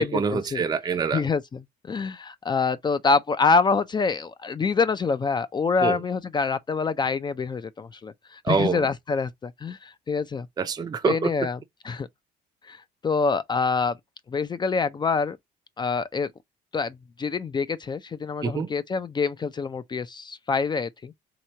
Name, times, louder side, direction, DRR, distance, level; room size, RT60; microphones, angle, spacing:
voice 1, 0.0-1.2 5.8-6.0 8.4-8.9 10.6-11.3 18.4-18.7, right 5 dB, 25° right, 0.5 m, -25 dB
voice 2, 1.1-1.6 1.9-10.5 11.1-11.6 11.8-12.1 12.7-13.9 14.3-15.4 15.8-16.3 16.7-21.1, left 4 dB, 25° left, 0.4 m, -26 dB
3.7 x 2.9 x 4.4 m
cardioid pair, 110°, 17 cm